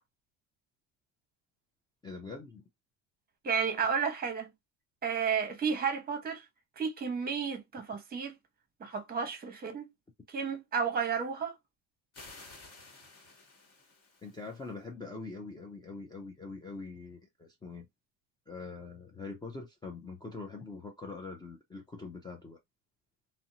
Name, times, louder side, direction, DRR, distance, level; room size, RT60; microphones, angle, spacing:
voice 1, 2.0-2.6 14.2-17.9 18.5-22.6, left 3 dB, 15° left, 0.3 m, -43 dB
voice 2, 3.4-4.5 5.0-6.4 6.8-8.4 8.8-9.8 10.3-11.6, right 6 dB, 25° right, 0.8 m, -32 dB
sound 1, 12.1-14.7, left 3 dB, 45° left, 1.3 m, -53 dB
2.6 x 2.0 x 2.7 m
cardioid pair, 130°, 36 cm